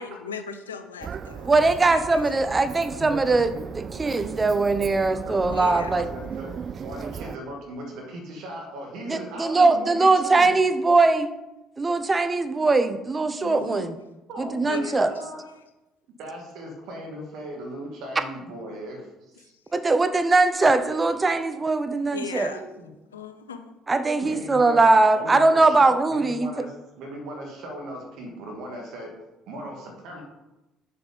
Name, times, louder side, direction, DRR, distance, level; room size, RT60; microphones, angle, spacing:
voice 1, 0.0-1.5 1.9-2.2 5.5-6.0 13.4-14.0 14.6-15.0 22.1-22.6 23.1-23.7, left 5 dB, 85° left, 9 dB, 0.5 m, -37 dB
sound 1, 1.0-7.4, right 7 dB, 45° right, 0.4 m, -36 dB
voice 2, 1.5-6.1 9.1-11.3 11.8-14.0 14.4-15.1 19.7-22.5 23.9-26.5, right 3 dB, 25° right, 10 dB, 0.7 m, -21 dB
voice 3, 5.3-6.5 6.8-10.5 14.3-15.4 16.2-19.5 22.5-22.9 24.2-24.8 25.1-29.1 29.5-30.2, right 1 dB, 65° right, 1 dB, 1.9 m, -38 dB
7.2 x 4.9 x 5.1 m, 0.98 s
hypercardioid pair, 55°, 0 cm